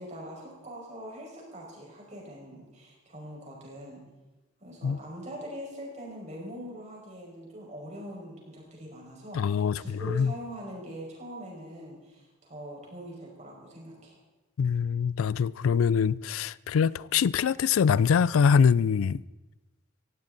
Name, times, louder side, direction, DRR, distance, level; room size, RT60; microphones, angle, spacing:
voice 1, 0.0-4.0 4.6-14.2, equal, 35° right, 5.3 m, -42 dB
voice 2, 9.3-10.3 14.6-19.2, left 6 dB, 90° left, 0.4 m, -24 dB
17.5 x 16.0 x 4.0 m
head